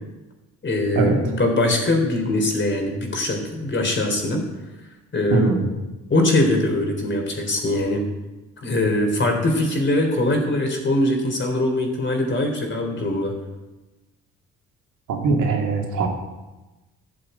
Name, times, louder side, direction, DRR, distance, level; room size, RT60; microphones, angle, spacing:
voice 1, 0.6-4.5 5.1-5.6 6.1-8.1 8.6-13.3, left 1 dB, 40° left, 2 dB, 3.9 m, -22 dB
voice 2, 5.3-5.7 15.1-16.1, right 3 dB, 85° right, 1 dB, 2.6 m, -20 dB
12.0 x 7.8 x 8.3 m, 1.1 s
cardioid pair, 90°, 30 cm